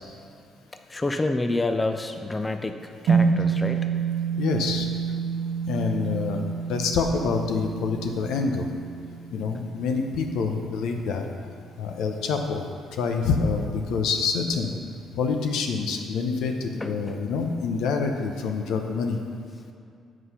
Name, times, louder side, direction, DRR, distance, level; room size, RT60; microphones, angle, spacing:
voice 1, 0.9-3.8 16.8-17.2, left 2 dB, 15° left, 6 dB, 0.5 m, -28 dB
sound 1, 3.1-11.5, right 5 dB, 80° right, 1.0 m, -28 dB
voice 2, 4.4-4.9 5.6-6.4 6.7-8.7 9.3-11.3 11.8-12.6 12.9-14.7 15.1-19.2, left 5 dB, 85° left, 4 dB, 0.8 m, -26 dB
7.8 x 5.0 x 5.6 m, 2.4 s
cardioid pair, 100°, 0 cm